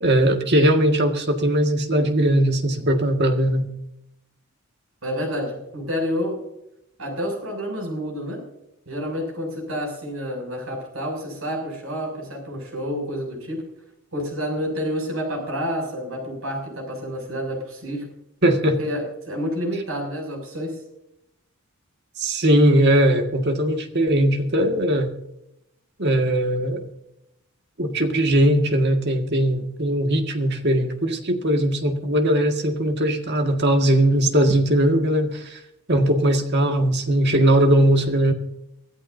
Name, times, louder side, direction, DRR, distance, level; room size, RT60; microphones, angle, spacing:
voice 1, 0.0-3.7 18.4-18.8 22.2-25.1 26.0-26.8 27.8-35.6 35.9-38.3, right 1 dB, 50° right, 4 dB, 1.9 m, -19 dB
voice 2, 5.0-6.4 7.0-8.4 8.9-13.6 14.1-18.1 18.8-20.8, equal, 70° right, 1 dB, 6.9 m, -29 dB
24.5 x 14.0 x 2.7 m, 0.82 s
head